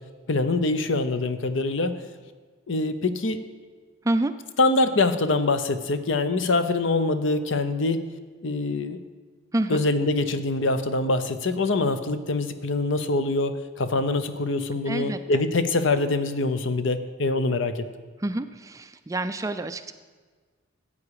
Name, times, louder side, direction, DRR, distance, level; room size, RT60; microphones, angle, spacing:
voice 1, 0.3-2.0 2.7-3.4 4.6-8.0 8.4-9.0 9.7-17.8, left 2 dB, 65° left, 10 dB, 0.7 m, -24 dB
voice 2, 14.9-15.2 18.2-19.9, right 1 dB, 15° right, 10 dB, 0.3 m, -27 dB
13.5 x 8.5 x 4.8 m, 1.5 s
head